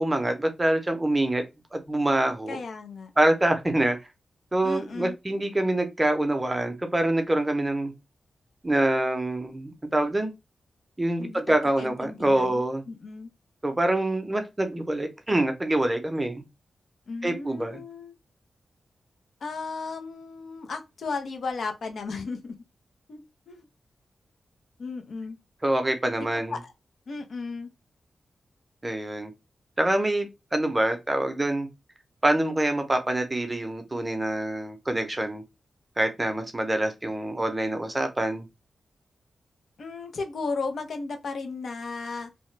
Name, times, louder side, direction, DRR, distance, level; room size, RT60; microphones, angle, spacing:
voice 1, 0.0-1.4 1.7-2.6 3.2-4.0 4.5-7.9 8.6-10.3 11.0-12.8 13.6-16.4 17.2-17.8 25.6-26.5 28.8-29.3 29.8-31.7 32.2-35.4 36.0-38.5, right 1 dB, 20° right, 0.6 m, -25 dB
voice 2, 2.5-3.1 4.6-5.2 11.2-13.3 17.1-18.1 19.4-22.6 23.1-23.7 24.8-25.4 26.5-26.7 27.1-27.7 39.8-42.3, left 4 dB, 70° left, 0.6 m, -35 dB
2.9 x 2.1 x 3.2 m
cardioid pair, 85°, 0 cm